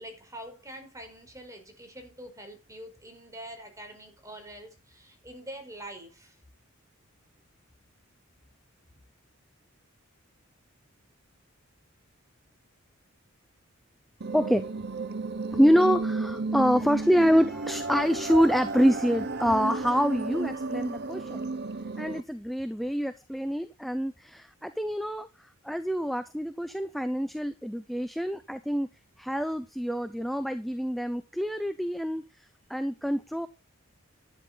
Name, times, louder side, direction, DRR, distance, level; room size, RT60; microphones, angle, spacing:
voice 1, 0.0-6.4, right 1 dB, 15° right, 5.0 m, -45 dB
sound 1, 14.2-22.2, right 3 dB, 50° right, 0.8 m, -33 dB
voice 2, 14.3-14.7 15.5-21.5 22.0-25.3 25.6-28.9 29.2-32.2 32.7-33.5, equal, ahead, 0.7 m, -26 dB
11.0 x 10.5 x 4.0 m
head